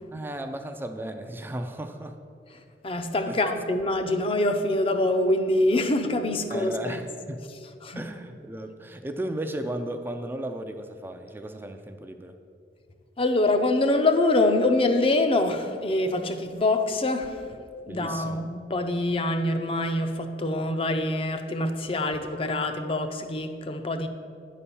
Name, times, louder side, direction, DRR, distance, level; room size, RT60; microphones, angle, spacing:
voice 1, 0.1-2.2 3.3-3.4 6.5-7.5 8.0-12.3 17.9-18.4, right 1 dB, 10° right, 0.3 m, -35 dB
voice 2, 2.8-7.0 7.8-8.0 13.2-17.4 17.9-24.1, left 2 dB, 30° left, 0.6 m, -25 dB
10.0 x 4.2 x 6.9 m
head